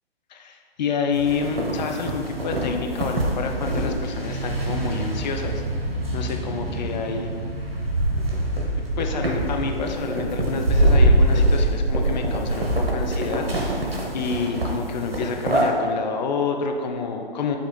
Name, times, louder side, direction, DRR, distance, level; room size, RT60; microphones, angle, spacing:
voice 1, 0.3-5.6 6.1-7.3 9.0-13.5 14.1-17.6, left 5 dB, 45° left, 4 dB, 0.7 m, -28 dB
sound 1, 1.1-15.7, right 1 dB, 75° right, 1.4 m, -24 dB
6.3 x 3.2 x 5.3 m, 2.2 s
figure-of-eight pair, 120°, 31 cm